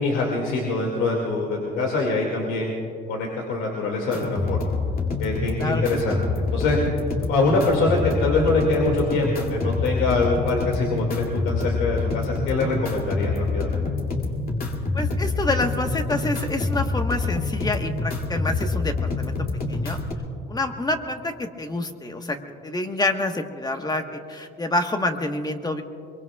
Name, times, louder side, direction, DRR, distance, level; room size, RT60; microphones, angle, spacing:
voice 1, 0.0-2.7 3.1-4.7 5.2-6.8 7.2-13.8, left 3 dB, 80° left, -1 dB, 2.4 m, -24 dB
sound 1, 4.1-20.1, left 3 dB, 50° left, 2.8 m, -26 dB
voice 2, 5.6-6.0 14.9-19.4 19.7-20.0 20.5-22.4 22.6-25.8, left 2 dB, 20° left, 5 dB, 1.4 m, -27 dB
23.5 x 22.5 x 2.4 m, 2.4 s
cardioid pair, 85°, 20 cm